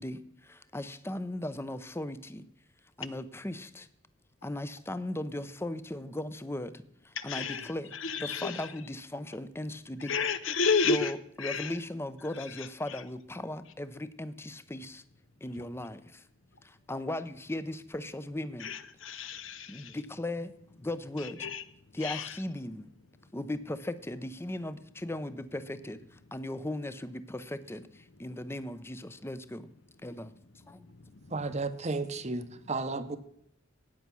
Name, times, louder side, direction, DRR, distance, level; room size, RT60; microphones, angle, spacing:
voice 1, 0.0-2.4 3.0-3.9 4.4-7.9 8.2-10.1 10.9-15.0 15.4-16.2 16.6-18.7 19.7-20.5 20.8-21.5 21.9-22.9 23.3-29.7 30.0-30.3 30.7-30.9, left 1 dB, 10° left, 13 dB, 0.6 m, -37 dB
voice 2, 7.2-8.7 10.0-11.1 11.4-11.8 12.4-13.0 18.6-20.0 21.2-21.6 22.0-22.4 30.9-31.5, left 5 dB, 80° left, 12 dB, 1.0 m, -32 dB
voice 3, 31.3-33.2, right 3 dB, 35° right, 11 dB, 0.9 m, -33 dB
13.5 x 9.4 x 6.1 m, 0.72 s
head